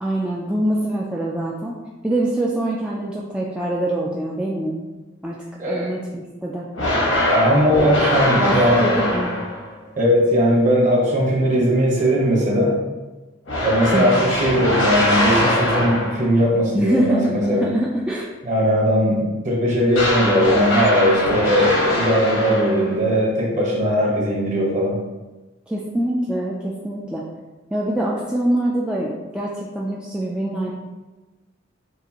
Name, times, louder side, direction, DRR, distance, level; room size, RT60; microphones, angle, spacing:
voice 1, 0.0-1.8 2.0-4.8 5.2-6.7 8.3-9.3 13.9-14.2 16.7-18.3 25.7-27.3 27.7-30.7, right 1 dB, 5° right, -4 dB, 0.3 m, -24 dB
voice 2, 5.6-5.9 7.3-8.9 10.0-12.8 13.6-17.7 18.4-25.0, equal, 40° right, -3 dB, 1.2 m, -19 dB
sound 1, 6.7-9.7 13.5-16.4 19.9-23.0, left 1 dB, 90° left, 1.2 m, -22 dB
6.2 x 2.5 x 2.9 m, 1.2 s
head